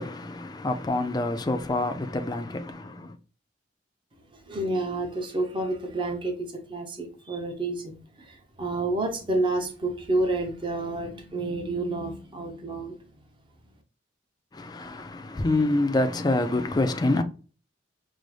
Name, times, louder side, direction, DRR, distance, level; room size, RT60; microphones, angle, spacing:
voice 1, 0.0-3.1 14.5-17.2, left 2 dB, 20° left, 0.3 m, -26 dB
voice 2, 4.5-13.0, right 2 dB, 25° right, 0.6 m, -29 dB
5.2 x 2.0 x 3.2 m
head